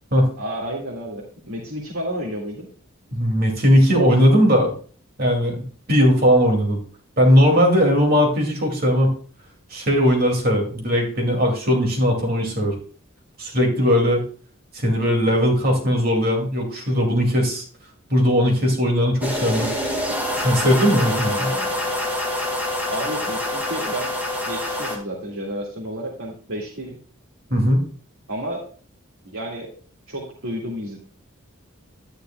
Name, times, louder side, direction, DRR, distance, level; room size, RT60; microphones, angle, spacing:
voice 1, 0.4-2.7 21.2-22.0 22.9-24.1 24.5-27.0 28.3-28.6 29.3-29.7 30.1-31.0, equal, 75° right, -4 dB, 2.0 m, -31 dB
voice 2, 3.1-4.7 5.2-5.6 5.9-6.8 7.2-9.1 9.7-12.7 13.4-14.2 14.8-17.6 18.1-19.7 20.4-21.5 27.5-27.8, equal, 45° right, 1 dB, 2.4 m, -18 dB
sound 1, 19.2-25.0, left 1 dB, 10° right, 2.0 m, -26 dB
11.5 x 10.0 x 2.3 m, 0.42 s
head